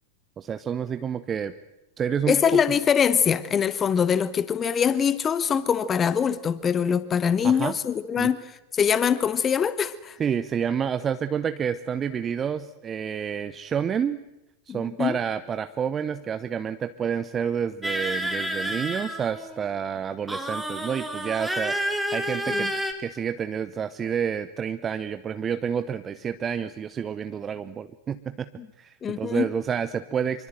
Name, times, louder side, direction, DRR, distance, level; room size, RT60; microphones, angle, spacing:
voice 1, 0.4-1.5 2.0-2.4 7.4-7.8 8.2-8.3 10.2-14.2 14.7-21.8 22.1-22.7 23.0-28.5 28.8-30.5, right 7 dB, 25° right, 12 dB, 0.9 m, -29 dB
voice 2, 2.3-8.4 8.7-10.2 14.7-15.2 22.5-22.7 29.0-29.5, left 7 dB, 20° left, 16 dB, 1.0 m, -23 dB
sound 1, 17.8-19.6 20.3-22.9, right 1 dB, ahead, 3.7 m, -29 dB
26.0 x 24.5 x 7.8 m, 0.92 s
figure-of-eight pair, 90°, 0 cm